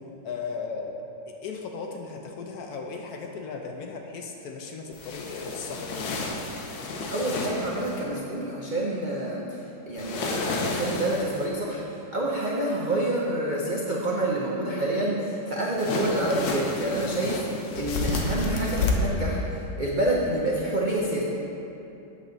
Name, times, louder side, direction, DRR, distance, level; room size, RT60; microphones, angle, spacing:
voice 1, 0.2-6.1, left 4 dB, 70° left, 2 dB, 1.0 m, -36 dB
sound 1, 4.9-8.0 10.0-11.5 15.8-18.9, left 3 dB, 85° left, 1.5 m, -31 dB
voice 2, 7.1-21.2, right 1 dB, 60° right, -4 dB, 0.5 m, -28 dB
8.3 x 7.1 x 3.9 m, 2.9 s
omnidirectional pair, 2.0 m